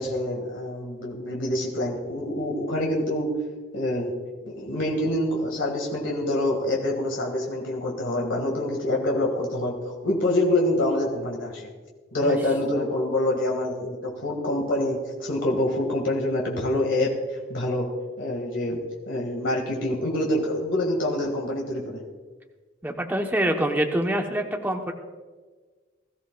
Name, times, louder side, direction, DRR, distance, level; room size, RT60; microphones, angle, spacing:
voice 1, 0.0-3.3 3.7-4.1 4.4-11.7 12.1-17.1 17.5-17.9 18.2-18.8 19.1-22.0, left 1 dB, 70° left, -2 dB, 1.8 m, -26 dB
voice 2, 22.8-24.9, right 1 dB, 10° right, 2 dB, 0.9 m, -25 dB
21.0 x 14.0 x 2.3 m, 1.4 s
head